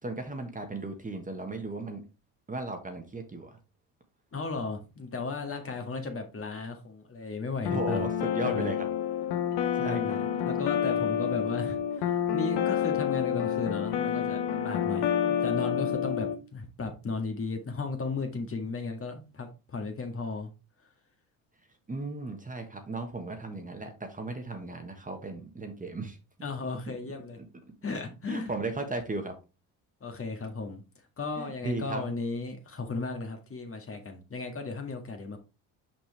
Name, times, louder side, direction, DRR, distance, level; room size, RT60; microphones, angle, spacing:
voice 1, 0.0-2.0 2.5-3.6 5.7-5.8 7.7-8.9 9.7-10.2 21.9-26.2 26.9-27.0 27.4-27.5 28.3-29.3 31.4-32.1, right 2 dB, 20° right, 1.4 m, -36 dB
voice 2, 4.3-8.1 8.4-8.7 9.8-10.2 10.5-20.5 26.4-27.4 27.8-28.5 30.0-30.8 31.2-35.4, left 3 dB, 30° left, 1.8 m, -35 dB
sound 1, 7.7-16.4, left 9 dB, 65° left, 1.2 m, -28 dB
6.0 x 5.3 x 3.4 m
supercardioid pair, 75°, 42 cm